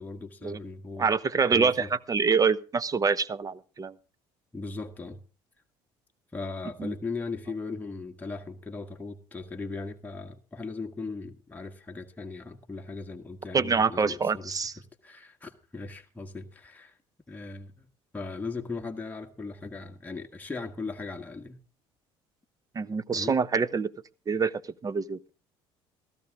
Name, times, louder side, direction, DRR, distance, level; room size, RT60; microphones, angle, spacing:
voice 1, 0.0-1.1 1.5-1.9 4.5-5.2 6.3-14.6 15.0-17.0 17.3-17.9 18.1-21.6 23.1-23.4, left 3 dB, 15° left, 1.7 m, -38 dB
voice 2, 1.0-3.9 6.8-6.9 13.5-14.8 22.7-23.9 24.3-24.5 24.8-25.3, right 5 dB, 30° right, 0.9 m, -26 dB
16.0 x 14.0 x 3.7 m
supercardioid pair, 80°, 12 cm